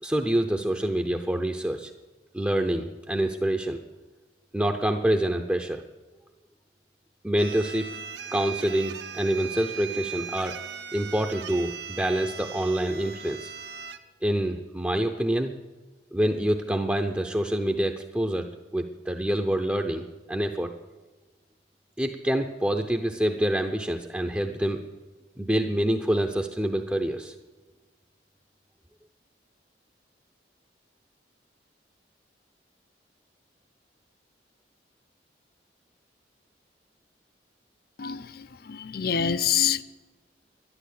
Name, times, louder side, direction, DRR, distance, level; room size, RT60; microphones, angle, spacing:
voice 1, 0.0-1.9 2.3-3.8 4.5-5.8 7.2-7.9 8.3-10.6 10.9-13.5 14.2-15.5 16.1-20.7 22.0-24.8 25.4-27.3, right 1 dB, 10° right, 3 dB, 0.6 m, -26 dB
sound 1, 7.4-14.0, right 7 dB, 75° right, 0.9 m, -39 dB
voice 2, 38.0-39.8, left 8 dB, 55° left, 15 dB, 0.5 m, -26 dB
11.5 x 11.0 x 8.3 m, 1.2 s
head